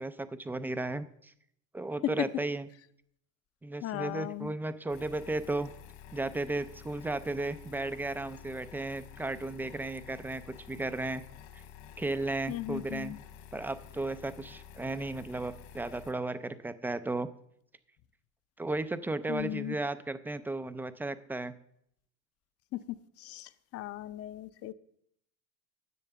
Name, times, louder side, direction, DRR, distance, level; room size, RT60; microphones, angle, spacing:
voice 1, 0.0-1.3 1.7-2.7 3.6-5.7 6.1-11.2 11.5-11.6 12.0-13.1 13.5-17.3 18.6-21.5, right 2 dB, 5° right, 11 dB, 0.3 m, -34 dB
voice 2, 3.8-4.5 12.5-13.2 19.3-19.8 22.7-22.8 23.2-24.7, left 15 dB, 35° left, 14 dB, 0.7 m, -38 dB
sound 1, 4.9-16.1, left 9 dB, 60° left, 2.2 m, -50 dB
11.0 x 7.5 x 6.8 m, 0.72 s
supercardioid pair, 110°, 40 cm